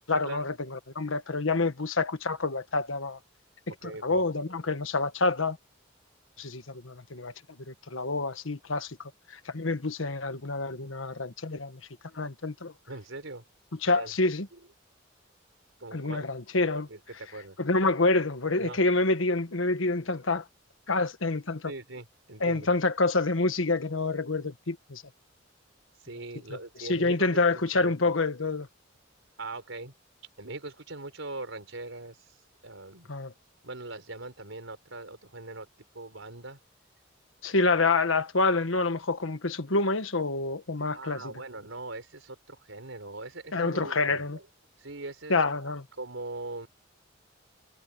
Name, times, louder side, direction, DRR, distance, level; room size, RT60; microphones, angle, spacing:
voice 1, 0.1-3.2 3.7-5.6 6.4-7.3 7.7-11.8 12.1-12.7 13.8-14.5 15.9-16.9 17.6-20.5 20.9-21.7 22.4-25.0 26.5-28.7 33.1-33.3 37.4-41.3 43.5-44.4 45.3-45.8, left 3 dB, 85° left, 1.5 m, -27 dB
voice 2, 3.8-4.5 12.9-13.4 13.9-14.1 15.8-16.3 16.9-17.6 18.6-18.8 21.6-22.7 25.9-27.4 27.7-28.0 29.4-29.9 30.4-33.1 33.6-35.7 35.9-36.6 37.5-37.6 40.9-44.4 44.8-46.7, right 2 dB, 80° right, 4.5 m, -41 dB
head